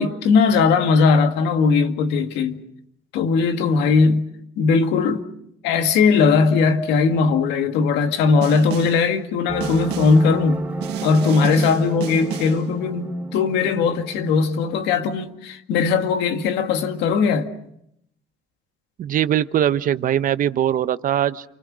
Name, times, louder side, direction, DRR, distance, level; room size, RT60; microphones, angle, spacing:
voice 1, 0.0-2.6 3.1-4.3 4.6-5.3 5.6-10.7 11.0-17.5, left 5 dB, 90° left, 2.1 m, -19 dB
Snare drum, 8.4-9.1 9.6-10.3 10.8-12.7, right 11 dB, 85° right, 1.8 m, -32 dB
sound 1, 9.5-14.7, right 2 dB, 10° right, 3.4 m, -31 dB
voice 2, 19.0-21.4, right 10 dB, 55° right, 1.0 m, -21 dB
29.5 x 24.5 x 6.3 m
cardioid pair, 110°, 17 cm